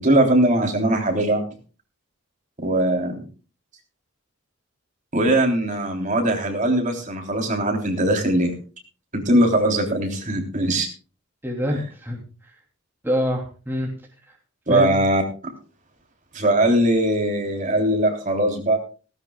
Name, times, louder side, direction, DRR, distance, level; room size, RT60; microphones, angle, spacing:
voice 1, 0.0-1.4 2.6-3.2 5.1-8.6 9.1-10.9 11.7-11.8 14.7-15.2 16.3-18.8, right 1 dB, 35° right, 3 dB, 3.5 m, -20 dB
voice 2, 11.4-12.2 13.0-13.9 14.7-15.0, equal, 10° right, 0 dB, 3.0 m, -25 dB
18.0 x 17.0 x 2.3 m, 0.35 s
head